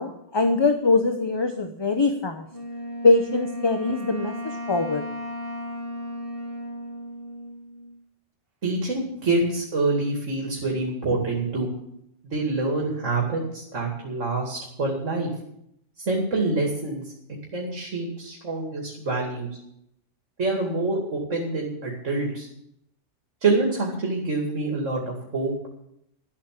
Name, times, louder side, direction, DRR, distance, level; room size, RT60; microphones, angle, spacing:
voice 1, 0.0-2.4 3.0-4.3 4.7-5.0, left 3 dB, 25° left, 6 dB, 0.8 m, -22 dB
Wind instrument woodwind instrument, 2.5-8.0, equal, 50° right, 2.0 m, -35 dB
voice 2, 8.6-11.7 12.2-15.3 16.0-17.0 17.5-19.5 20.4-22.5 23.4-25.5, right 3 dB, 85° right, -1 dB, 2.9 m, -26 dB
12.5 x 8.6 x 7.6 m, 0.75 s
omnidirectional pair, 1.3 m